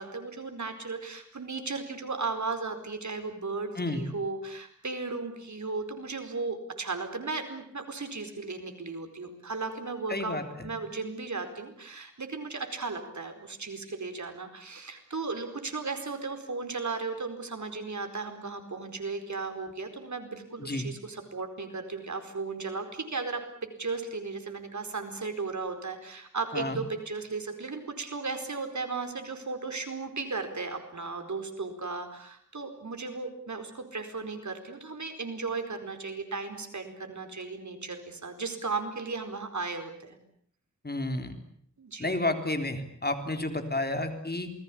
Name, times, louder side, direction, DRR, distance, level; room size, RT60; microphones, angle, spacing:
voice 1, 0.0-10.4 10.6-40.2 41.8-42.2, right 4 dB, 75° right, 7 dB, 4.6 m, -36 dB
voice 2, 10.1-10.7 20.6-20.9 26.5-26.8 40.8-41.3 42.0-44.5, left 2 dB, 35° left, 7 dB, 3.8 m, -31 dB
28.0 x 20.5 x 8.6 m, 0.64 s
wide cardioid pair, 90°, 29 cm